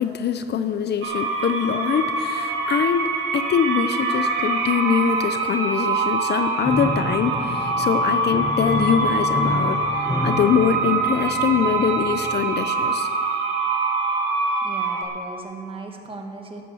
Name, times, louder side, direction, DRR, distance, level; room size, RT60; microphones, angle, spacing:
voice 1, 0.0-9.8 10.2-13.1, left 7 dB, 55° left, 10 dB, 0.7 m, -23 dB
sound 1, 1.0-15.0, right 3 dB, 80° right, 1.9 m, -24 dB
Piano, 6.6-12.6, left 1 dB, 15° left, 1.9 m, -30 dB
voice 2, 14.6-16.6, right 3 dB, 25° right, 2 dB, 2.1 m, -37 dB
12.0 x 9.7 x 7.1 m, 2.6 s
cardioid pair, 90°, 20 cm